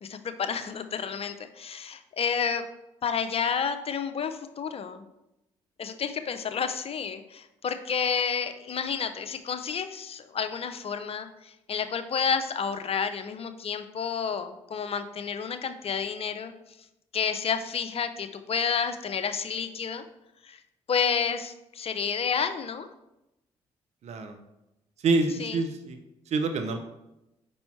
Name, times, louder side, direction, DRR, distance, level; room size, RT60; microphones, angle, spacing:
voice 1, 0.0-2.6 3.0-5.0 5.8-16.5 17.1-20.0 20.5-20.6 20.9-22.9 25.4-25.6, left 6 dB, 50° left, 10 dB, 0.7 m, -30 dB
voice 2, 24.0-24.4 25.0-26.0 26.3-26.8, right 3 dB, 60° right, 6 dB, 0.7 m, -26 dB
5.3 x 4.3 x 4.4 m, 0.90 s
hypercardioid pair, 50°, 13 cm